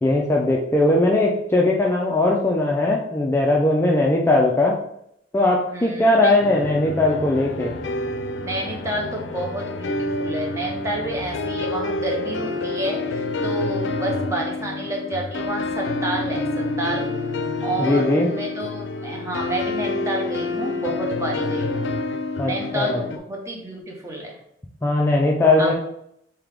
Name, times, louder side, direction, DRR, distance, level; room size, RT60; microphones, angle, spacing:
voice 1, 0.0-4.8 5.3-7.7 17.8-18.3 22.4-23.0 24.8-25.7, left 2 dB, 15° left, -2 dB, 0.3 m, -19 dB
voice 2, 5.7-6.3 8.4-17.1 17.6-21.9 22.4-24.4 25.6-25.7, right 1 dB, 15° right, -1 dB, 0.8 m, -29 dB
sound 1, 6.4-23.2, left 2 dB, 85° left, 0.4 m, -28 dB
3.6 x 2.8 x 3.4 m, 0.75 s
head